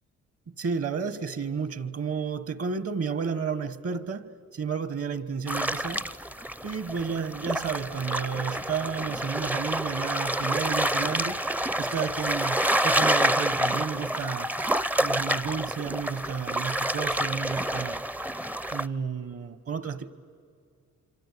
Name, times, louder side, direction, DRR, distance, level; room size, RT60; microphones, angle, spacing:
voice 1, 0.6-6.0 6.6-11.4 11.8-14.5 15.0-18.0 18.7-20.1, right 6 dB, 50° right, 1.3 m, -32 dB
sound 1, 5.5-18.9, right 1 dB, 5° right, 0.6 m, -28 dB
27.0 x 25.0 x 8.4 m
cardioid pair, 90°, 30 cm